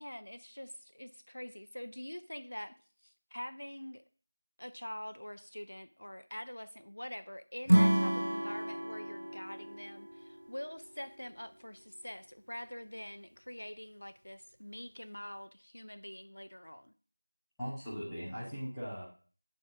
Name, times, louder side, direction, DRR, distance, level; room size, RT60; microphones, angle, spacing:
voice 1, 0.0-2.7 3.0-4.0 4.6-16.9, equal, 55° left, 0.5 m, -45 dB
Acoustic guitar / Strum, 7.7-10.9, equal, 90° right, 0.3 m, -30 dB
voice 2, 17.6-19.0, equal, ahead, 0.8 m, -39 dB
9.3 x 3.5 x 5.9 m
figure-of-eight pair, 180°, 0 cm